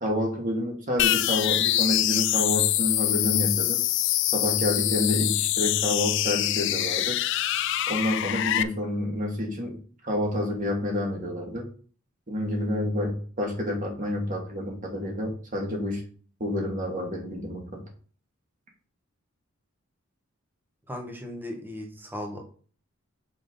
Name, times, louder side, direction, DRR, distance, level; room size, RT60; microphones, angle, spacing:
voice 1, 0.0-3.8 4.3-7.2 7.9-9.8 10.0-11.7 12.3-16.0 16.4-17.8, left 1 dB, 35° right, 0 dB, 2.0 m, -28 dB
sound 1, 1.0-8.6, left 14 dB, 55° left, 0.3 m, -25 dB
voice 2, 20.9-22.5, left 1 dB, 10° right, 2 dB, 1.2 m, -37 dB
5.9 x 5.6 x 3.8 m, 0.42 s
head